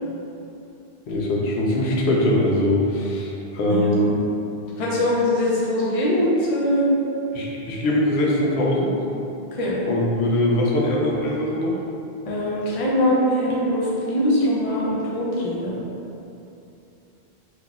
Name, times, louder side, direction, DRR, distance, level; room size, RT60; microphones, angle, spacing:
voice 1, 1.1-4.1 7.3-8.9 9.9-11.8, left 1 dB, 90° left, -3 dB, 0.8 m, -22 dB
voice 2, 4.8-6.8 9.6-9.8 12.2-15.7, left 1 dB, 40° left, -6 dB, 0.6 m, -22 dB
3.9 x 2.8 x 2.3 m, 2.8 s
omnidirectional pair, 1.0 m